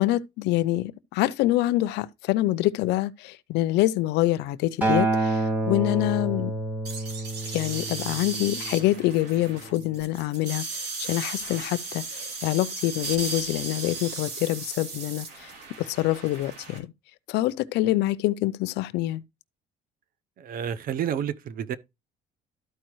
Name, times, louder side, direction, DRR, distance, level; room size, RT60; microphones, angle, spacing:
voice 1, 0.0-6.6 7.5-15.5 15.8-16.9 17.3-19.2, left 16 dB, 85° left, 0.5 m, -26 dB
Acoustic guitar, 4.8-9.1 9.9-10.0, right 2 dB, 10° right, 2.3 m, -28 dB
sound 1, 6.9-16.8, right 4 dB, 75° right, 2.6 m, -36 dB
voice 2, 20.4-21.8, right 9 dB, 60° right, 0.7 m, -30 dB
13.0 x 4.7 x 3.1 m
cardioid pair, 110°, 17 cm